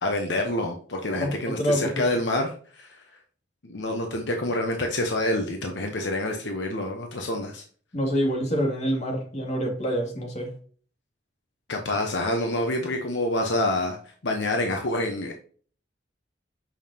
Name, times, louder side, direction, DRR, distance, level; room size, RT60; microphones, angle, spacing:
voice 1, 0.0-3.0 3.6-7.6 11.7-14.0 14.2-15.3, left 1 dB, 75° left, 3 dB, 1.0 m, -27 dB
voice 2, 1.2-2.0 7.9-10.5, equal, 40° left, 0 dB, 2.2 m, -26 dB
7.2 x 5.4 x 2.8 m, 0.43 s
head